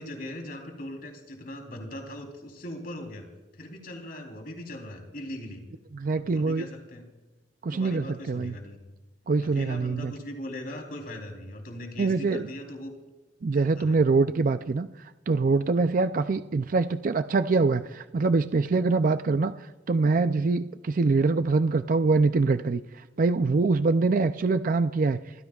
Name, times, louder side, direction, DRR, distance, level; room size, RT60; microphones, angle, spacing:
voice 1, 0.0-3.3 3.5-5.6 6.1-7.1 7.7-8.8 9.4-12.9 13.5-14.0, left 1 dB, 55° left, 3 dB, 3.6 m, -40 dB
voice 2, 5.9-6.6 7.6-8.5 9.3-10.1 12.0-12.4 13.4-14.9 15.3-19.5 19.9-22.8 23.2-25.2, right 3 dB, 50° right, 11 dB, 0.4 m, -24 dB
28.5 x 15.5 x 2.4 m, 1.1 s
head